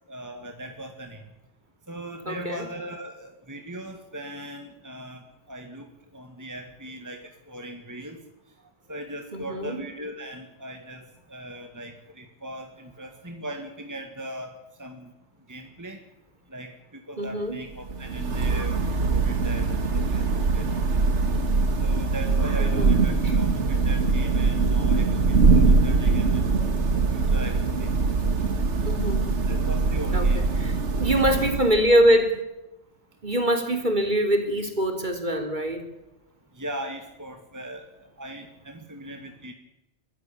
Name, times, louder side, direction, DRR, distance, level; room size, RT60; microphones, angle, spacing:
voice 1, 0.1-1.2 1.9-5.9 6.1-8.2 8.9-15.1 15.5-16.0 16.5-18.7 19.1-20.2 20.5-20.9 21.8-26.4 27.1-27.9 29.5-30.4 36.5-39.5, right 1 dB, 15° right, 5 dB, 2.1 m, -39 dB
voice 2, 2.3-2.7 9.3-9.8 17.2-17.6 22.6-22.9 23.2-23.4 28.9-29.4 30.1-30.7 31.0-32.4 33.2-35.8, equal, 40° right, 5 dB, 3.8 m, -24 dB
Thunder / Rain, 17.7-32.1, right 4 dB, 75° right, 2.0 m, -22 dB
23.0 x 15.0 x 8.7 m, 0.94 s
omnidirectional pair, 1.2 m